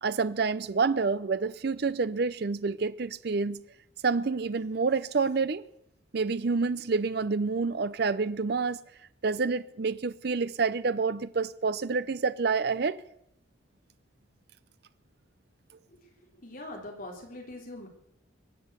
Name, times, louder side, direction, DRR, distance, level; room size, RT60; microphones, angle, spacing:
voice 1, 0.0-3.6 4.0-5.6 6.1-8.8 9.2-13.0, right 4 dB, 55° right, 0.5 m, -28 dB
voice 2, 16.4-17.9, left 1 dB, 45° left, 3.6 m, -42 dB
21.5 x 7.8 x 8.1 m
head